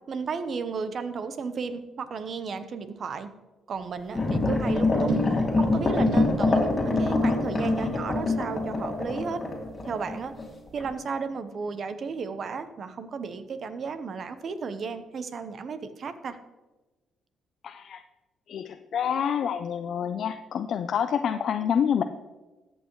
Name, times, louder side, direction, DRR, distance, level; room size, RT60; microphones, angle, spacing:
voice 1, 0.1-3.3 3.7-5.2 5.6-9.4 9.9-10.3 10.7-16.4, right 5 dB, 55° right, 11 dB, 0.9 m, -34 dB
sound 1, 4.1-10.5 10.8-10.9, left 3 dB, 30° left, 2.4 m, -25 dB
sound 2, 5.1-11.7 11.9-12.4 12.7-12.8, right 3 dB, 85° right, 2.0 m, -37 dB
voice 2, 17.6-18.0 18.5-22.0, left 8 dB, 65° left, 8 dB, 0.5 m, -27 dB
13.5 x 8.1 x 3.1 m, 1.1 s
cardioid pair, 90°, 0 cm